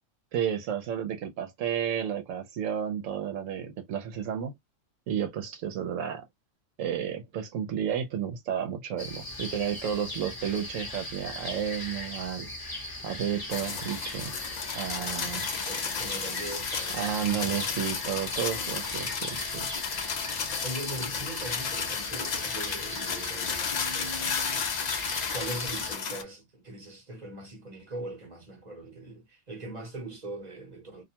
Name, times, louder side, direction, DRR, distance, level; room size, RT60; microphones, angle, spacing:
voice 1, 0.3-4.5 5.1-6.2 6.8-12.5 13.0-14.3 14.7-15.5 16.9-19.7, right 9 dB, 85° right, 1.0 m, -32 dB
sound 1, 9.0-25.9, left 1 dB, 20° left, 0.7 m, -39 dB
sound 2, 13.5-26.2, left 6 dB, 65° left, 0.4 m, -33 dB
voice 2, 15.7-17.3 20.6-24.3 25.3-31.0, right 2 dB, 40° right, 0.9 m, -41 dB
2.4 x 2.1 x 2.7 m
omnidirectional pair, 1.3 m